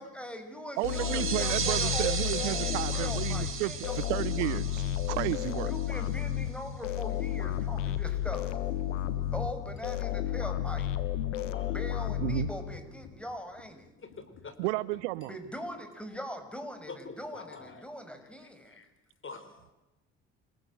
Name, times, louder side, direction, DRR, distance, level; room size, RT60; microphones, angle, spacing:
voice 1, 0.0-4.1 5.6-8.5 9.3-11.1 11.7-13.9 15.3-18.8, equal, 5° left, 7 dB, 6.5 m, -41 dB
sound 1, 0.8-13.1, left 12 dB, 85° left, 1.5 m, -32 dB
sound 2, 0.8-6.1, right 7 dB, 35° right, 4.6 m, -36 dB
voice 2, 0.8-3.7 4.1-5.7 12.2-12.5 14.6-15.3, right 20 dB, 75° right, 20 dB, 0.8 m, -32 dB
sound 3, 7.4-7.8 8.2-9.8 10.1-10.6 10.9-11.2 11.4-13.8 14.1-14.6 14.9-15.1 15.4-15.6, left 7 dB, 70° left, 5.8 m, -52 dB
voice 3, 11.3-11.7 14.0-14.5 16.9-17.8 18.7-18.9 19.2-19.7, left 4 dB, 35° left, 11 dB, 4.3 m, -46 dB
29.0 x 21.0 x 7.9 m, 1.0 s
hypercardioid pair, 55°, 36 cm